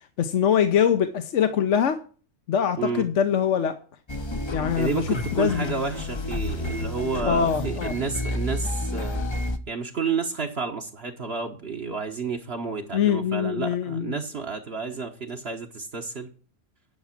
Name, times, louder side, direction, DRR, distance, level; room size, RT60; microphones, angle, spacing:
voice 1, 0.2-2.0 2.5-3.8 4.5-5.0 5.4-5.7 7.3-7.9 12.9-14.2, left 8 dB, 70° left, 8 dB, 1.1 m, -23 dB
sound 1, 4.1-9.6, left 1 dB, 25° left, 0.7 m, -30 dB
voice 2, 4.8-9.3 9.7-16.3, right 5 dB, 55° right, 2 dB, 1.4 m, -30 dB
10.5 x 6.1 x 5.9 m, 0.39 s
omnidirectional pair, 1.3 m